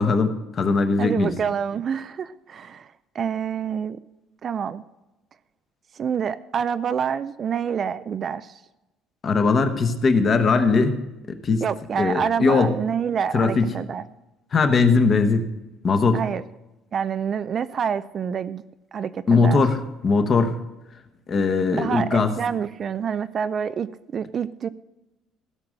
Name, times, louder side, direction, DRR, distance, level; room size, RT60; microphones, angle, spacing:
voice 1, 0.0-1.3 9.2-11.0 11.3-11.6 12.0-12.7 13.3-13.7 14.5-15.5 15.8-16.2 19.3-20.6 21.3-22.3, left 4 dB, 30° left, 8 dB, 1.1 m, -20 dB
voice 2, 1.0-2.9 3.1-4.0 4.4-4.8 6.0-8.6 11.6-14.0 16.1-16.4 16.9-18.6 18.9-19.6 21.7-23.9 24.1-24.7, right 7 dB, 35° right, 14 dB, 0.4 m, -27 dB
16.0 x 6.1 x 6.5 m, 0.98 s
cardioid pair, 155°, 0 cm